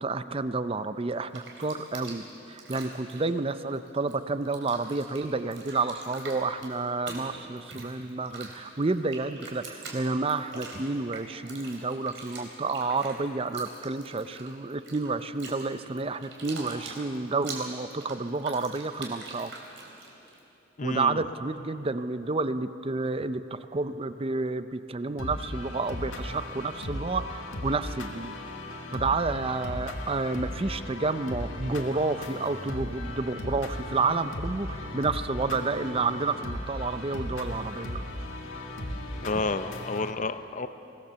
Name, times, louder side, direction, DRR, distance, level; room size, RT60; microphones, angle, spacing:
voice 1, 0.0-2.2 2.5-19.5 20.8-28.3 28.9-38.0, right 3 dB, 30° right, 12 dB, 0.5 m, -30 dB
Bathtub (filling or washing), 1.1-4.1 4.4-20.4, right 3 dB, 70° right, 3.5 m, -44 dB
voice 2, 20.8-21.2 39.2-40.7, left 3 dB, 40° left, 11 dB, 0.7 m, -30 dB
sound 1, 25.2-40.1, left 1 dB, 80° left, 1.9 m, -37 dB
23.0 x 17.5 x 6.9 m, 3.0 s
head